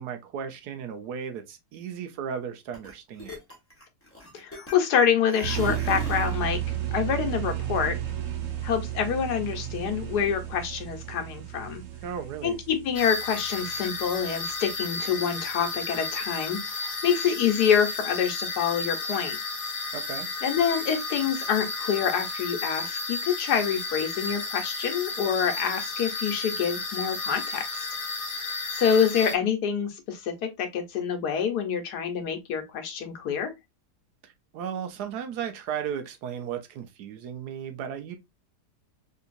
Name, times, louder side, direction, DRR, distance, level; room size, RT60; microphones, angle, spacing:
voice 1, 0.0-3.4 12.0-12.6 19.9-20.3 34.2-38.2, right 8 dB, 75° right, 1.2 m, -35 dB
sound 1, 2.7-2.9 3.2-5.0 5.3-6.4, left 1 dB, 10° left, 0.8 m, -39 dB
voice 2, 4.3-6.6 6.9-8.0 8.6-11.8 12.4-19.4 20.4-27.8 28.7-33.5, left 7 dB, 75° left, 1.4 m, -26 dB
sound 2, 5.4-14.9, right 12 dB, 60° right, 1.0 m, -33 dB
sound 3, 12.9-29.3, left 3 dB, 50° left, 0.6 m, -33 dB
3.9 x 2.8 x 2.4 m
omnidirectional pair, 1.8 m